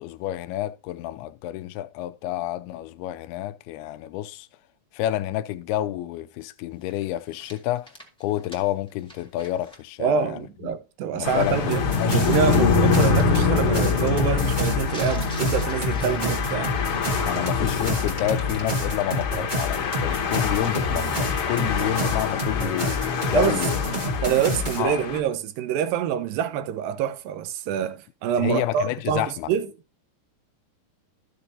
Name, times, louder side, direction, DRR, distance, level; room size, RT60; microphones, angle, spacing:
voice 1, 0.0-4.5 4.9-7.9 8.2-10.8 11.1-12.4 17.3-24.1 24.8-25.0 28.4-29.5, left 14 dB, 85° left, 2.5 m, -29 dB
sound 1, 6.8-9.8 10.1-10.2 11.8-12.5 12.8-13.2 14.8-16.7 17.1-17.4 18.5-18.7, equal, 5° left, 0.4 m, -46 dB
voice 2, 10.0-11.8 12.1-16.7 21.6-21.7 23.3-23.6 24.2-29.7, right 8 dB, 75° right, 2.4 m, -26 dB
sound 2, 11.2-25.2, left 5 dB, 60° left, 1.5 m, -25 dB
sound 3, 11.7-24.8, left 1 dB, 55° right, 0.5 m, -29 dB
13.0 x 6.7 x 2.8 m
omnidirectional pair, 4.5 m